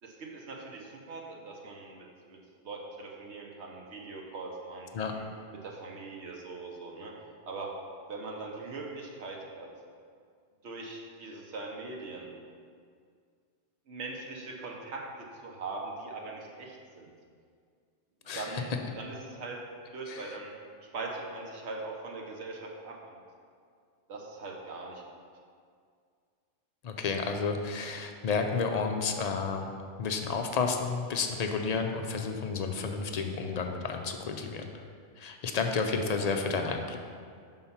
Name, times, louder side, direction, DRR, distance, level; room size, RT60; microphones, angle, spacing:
voice 1, 0.0-5.2 5.6-7.1 7.4-7.7 8.1-9.7 10.6-12.3 13.9-17.1 18.3-19.6 19.9-20.5 20.9-23.2 24.1-25.0, right 3 dB, 85° right, -1 dB, 1.1 m, -41 dB
voice 2, 18.3-18.6 20.1-20.2 26.8-34.7 35.2-37.0, left 4 dB, 60° left, 4 dB, 0.4 m, -31 dB
5.7 x 3.9 x 5.6 m, 2.1 s
omnidirectional pair, 1.1 m